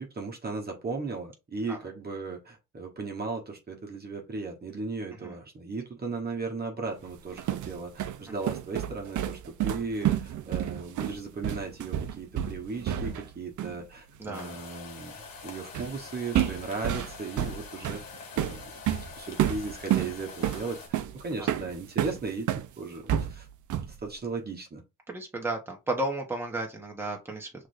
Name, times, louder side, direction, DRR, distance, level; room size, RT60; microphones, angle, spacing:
voice 1, 0.0-15.1 15.4-18.0 18.3-18.6 19.2-22.5 22.8-23.5 23.9-24.8, right 4 dB, 30° right, 1.3 m, -36 dB
sound 1, 7.1-13.3 13.6-13.8 15.7-16.0 16.3-22.7 23.1-24.0, right 11 dB, 60° right, 0.6 m, -30 dB
voice 2, 14.2-14.5 21.4-21.5 25.1-27.7, right 2 dB, 5° right, 1.3 m, -33 dB
sound 2, 14.3-20.9, left 5 dB, 80° left, 1.6 m, -45 dB
5.9 x 3.3 x 2.6 m
cardioid pair, 110°, 34 cm